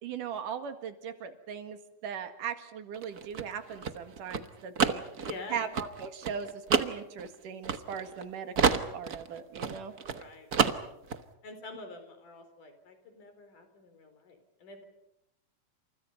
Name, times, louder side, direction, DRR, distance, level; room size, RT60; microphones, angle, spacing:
voice 1, 0.0-5.0 5.5-9.9, right 7 dB, 85° right, 8 dB, 3.5 m, -39 dB
sound 1, 2.9-8.2 8.6-10.2 10.5-11.2, right 6 dB, 55° right, 1.0 m, -29 dB
voice 2, 5.2-5.7 10.2-10.5 11.4-14.9, left 3 dB, 75° left, 8 dB, 5.6 m, -46 dB
29.5 x 28.0 x 5.6 m, 0.81 s
omnidirectional pair, 3.7 m